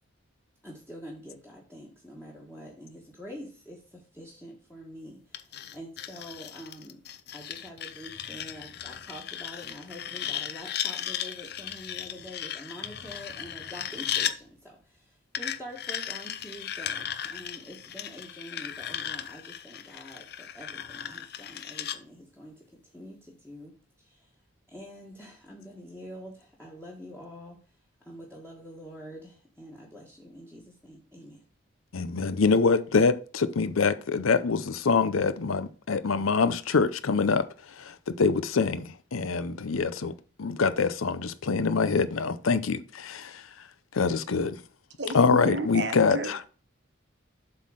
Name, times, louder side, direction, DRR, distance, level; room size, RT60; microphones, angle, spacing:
voice 1, 0.6-7.0 7.3-24.3 24.7-31.4, equal, 10° left, 1.5 m, -46 dB
sound 1, 5.3-14.4 15.3-22.0, left 10 dB, 50° left, 0.6 m, -36 dB
voice 2, 31.9-43.5 43.9-44.6 45.1-46.4, left 4 dB, 90° left, 0.6 m, -25 dB
voice 3, 45.0-46.5, right 2 dB, 55° right, 1.2 m, -33 dB
7.8 x 3.8 x 6.3 m
head